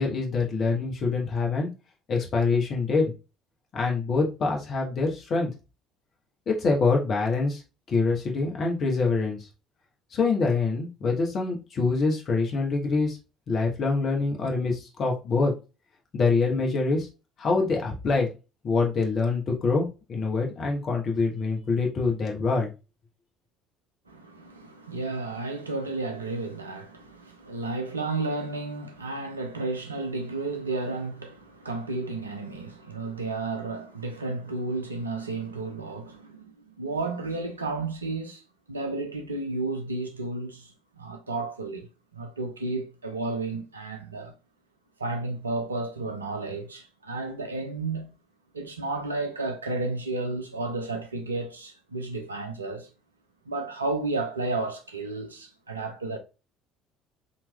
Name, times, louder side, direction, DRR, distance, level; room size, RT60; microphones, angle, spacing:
voice 1, 0.0-1.7 2.1-3.1 3.7-5.5 6.5-7.6 7.9-9.4 10.1-13.2 13.5-15.5 16.1-17.1 17.4-18.3 18.6-22.7, left 4 dB, 40° left, 1.0 m, -25 dB
voice 2, 24.1-38.4 38.7-44.3 45.0-48.1 48.5-52.9 53.5-56.2, right 3 dB, 80° right, 0.5 m, -32 dB
4.0 x 2.9 x 2.2 m
figure-of-eight pair, 55°, 0 cm